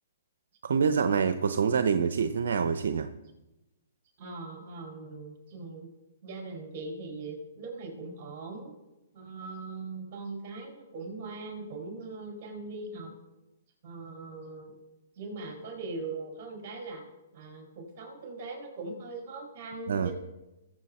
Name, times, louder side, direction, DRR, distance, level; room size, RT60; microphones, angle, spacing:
voice 1, 0.6-3.1 19.9-20.1, right 6 dB, 70° right, 10 dB, 0.7 m, -26 dB
voice 2, 4.2-5.9 6.2-8.7 9.1-13.1 13.8-14.7 15.2-17.0 17.3-20.1, right 3 dB, 40° right, 1 dB, 5.0 m, -40 dB
20.0 x 7.8 x 4.3 m, 1.0 s
hypercardioid pair, 140°, 0 cm